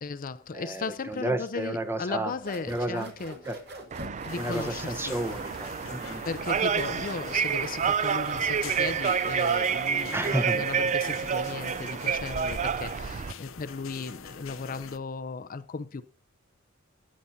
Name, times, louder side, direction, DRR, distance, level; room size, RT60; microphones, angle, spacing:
voice 1, 0.0-3.4 4.2-5.2 6.2-16.0, left 4 dB, 45° left, 0.5 m, -36 dB
voice 2, 0.5-2.3 2.7-3.1 3.4-3.6 4.4-6.2 10.1-10.6, right 1 dB, 10° right, 0.9 m, -31 dB
sound 1, 2.4-10.2, right 2 dB, 55° right, 2.3 m, -45 dB
sound 2, 3.9-13.3, right 7 dB, 35° right, 0.4 m, -29 dB
sound 3, 4.3-15.0, left 6 dB, 75° left, 0.7 m, -44 dB
14.0 x 8.7 x 2.7 m
head